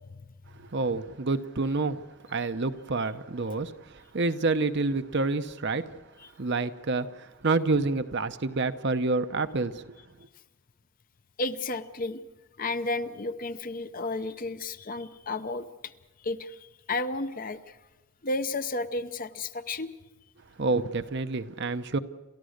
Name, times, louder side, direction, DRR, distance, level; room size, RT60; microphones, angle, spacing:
voice 1, 0.6-2.0 2.3-6.0 6.4-10.0 20.6-22.0, right 3 dB, 50° right, 0.8 m, -28 dB
voice 2, 11.4-12.2 12.6-15.9 16.2-17.8 18.2-19.9, left 2 dB, 40° left, 0.8 m, -32 dB
29.0 x 14.0 x 6.6 m
head